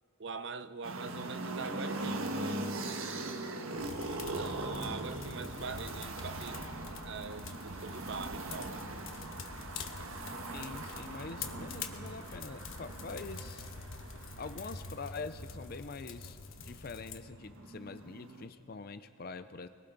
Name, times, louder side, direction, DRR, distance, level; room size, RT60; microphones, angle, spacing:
voice 1, 0.2-2.7 4.0-6.7 7.0-8.8, right 4 dB, 55° right, 0.7 m, -43 dB
sound 1, 0.8-15.7 16.8-18.5, right 2 dB, 80° right, 1.4 m, -41 dB
sound 2, 3.8-17.2, left 4 dB, 70° left, 1.1 m, -46 dB
voice 2, 10.5-13.7 14.4-19.7, left 4 dB, 45° left, 0.5 m, -44 dB
30.0 x 21.5 x 4.0 m
head